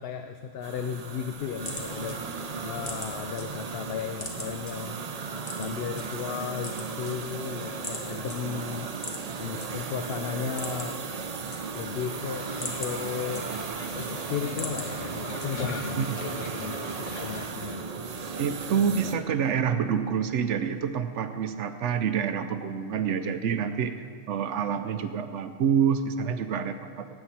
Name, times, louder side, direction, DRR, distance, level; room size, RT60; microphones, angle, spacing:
voice 1, 0.0-2.2 2.6-4.9 5.5-8.9 9.4-10.9 11.7-13.5 13.9-17.9, left 7 dB, 60° left, 7 dB, 0.7 m, -35 dB
sound 1, 0.6-19.1, right 5 dB, 40° right, 0.6 m, -36 dB
sound 2, 1.6-3.4 3.8-4.7 5.4-6.0 6.5-7.5 7.8-8.0 8.3-8.4 8.9-9.7 10.0-10.1 10.4-11.0 11.3-12.0 12.4-13.8 14.2-14.9 15.4-15.8, left 2 dB, 30° left, 1.5 m, -39 dB
sound 3, 12.3-17.5, left 5 dB, 75° left, 1.4 m, -41 dB
voice 2, 18.4-27.1, right 7 dB, 75° right, 9 dB, 0.9 m, -27 dB
18.5 x 8.7 x 4.3 m, 2.1 s
omnidirectional pair, 1.3 m